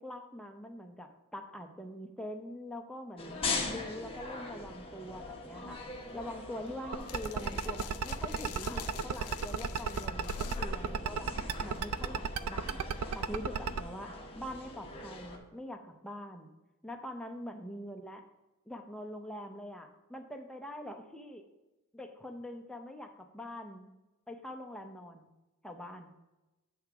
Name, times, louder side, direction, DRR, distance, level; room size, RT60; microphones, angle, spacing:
voice 1, 0.0-5.8 6.1-11.3 11.6-12.9 13.1-16.5 16.8-18.2 18.7-21.5 21.9-23.9 24.3-25.3 25.6-26.1, left 1 dB, 5° left, 4 dB, 0.6 m, -44 dB
sound 1, 3.2-15.4, left 3 dB, 25° left, 1.0 m, -42 dB
sound 2, 5.7-12.0, left 6 dB, 85° left, 0.5 m, -46 dB
sound 3, 6.9-13.8, right 6 dB, 70° right, 0.4 m, -33 dB
8.5 x 3.5 x 5.9 m, 1.0 s
head